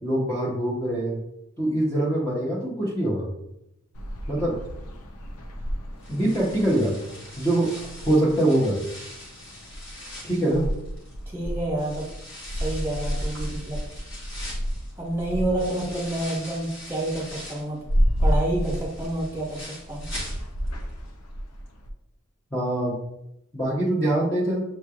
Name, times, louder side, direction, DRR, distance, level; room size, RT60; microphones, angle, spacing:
voice 1, 0.0-1.2 1.6-3.3 4.3-4.6 6.1-7.0 7.4-8.8 10.2-10.7 22.5-23.0 23.5-24.6, right 1 dB, 10° left, -7 dB, 0.7 m, -24 dB
sound 1, 3.9-21.9, equal, 90° left, 0.6 m, -31 dB
sound 2, 6.0-11.3 11.8-17.8 18.2-20.8 21.1-21.2 21.7-21.8, left 1 dB, 60° left, 1.5 m, -42 dB
voice 2, 11.3-12.0 12.6-13.8 15.0-17.8 18.2-20.0, right 1 dB, 10° right, -4 dB, 1.3 m, -29 dB
6.6 x 3.1 x 2.3 m, 0.82 s
head